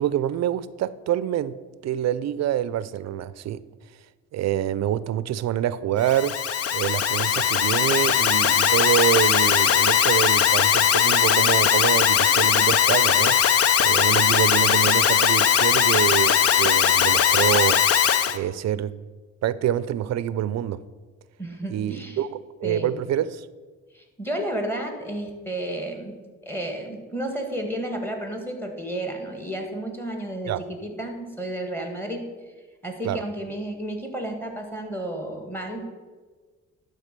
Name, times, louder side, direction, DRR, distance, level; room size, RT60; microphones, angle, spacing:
voice 1, 0.0-1.6 1.8-3.6 4.3-6.3 6.7-17.8 18.3-18.9 19.4-20.8 21.7-23.5 30.5-30.6 33.0-33.2, right 11 dB, 60° right, 17 dB, 0.5 m, -26 dB
Alarm, 6.0-18.4, left 9 dB, 50° left, 0.6 m, -19 dB
voice 2, 21.4-22.2 22.6-23.0 23.9-26.2 26.4-32.2 32.8-35.9, right 1 dB, 5° left, 4 dB, 1.8 m, -32 dB
11.5 x 3.9 x 6.7 m, 1.4 s
cardioid pair, 90°, 30 cm